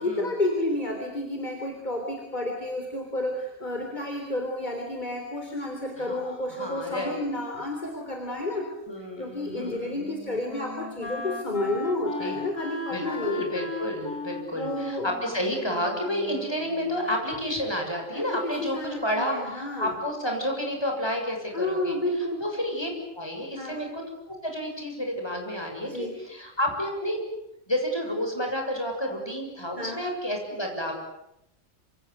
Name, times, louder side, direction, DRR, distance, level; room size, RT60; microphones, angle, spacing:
voice 1, 0.0-8.7 9.2-13.6 14.6-15.1 18.1-19.9 21.5-22.4 23.6-23.8 25.8-26.2 29.8-30.0, left 1 dB, 35° left, 3 dB, 4.0 m, -31 dB
voice 2, 6.0-7.2 8.9-10.0 12.2-12.4 12.9-22.0 22.4-22.9 23.1-24.0 24.3-27.2 27.7-30.9, equal, 20° left, 2 dB, 7.1 m, -30 dB
Wind instrument woodwind instrument, 9.4-17.2, left 4 dB, 75° left, 3.6 m, -38 dB
27.0 x 26.5 x 8.3 m, 0.83 s
omnidirectional pair, 1.3 m